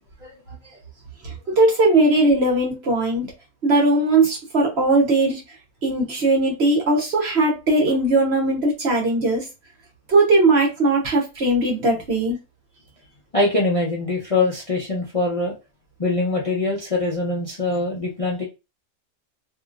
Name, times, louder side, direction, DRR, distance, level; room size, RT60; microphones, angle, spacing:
voice 1, 0.2-0.8 13.3-15.5 16.0-18.4, left 2 dB, 35° left, -3 dB, 0.6 m, -23 dB
voice 2, 1.2-3.3 3.6-5.4 5.8-9.4 10.1-12.4, right 2 dB, 50° right, 0 dB, 1.1 m, -19 dB
3.0 x 2.9 x 2.5 m, 0.27 s
omnidirectional pair, 1.5 m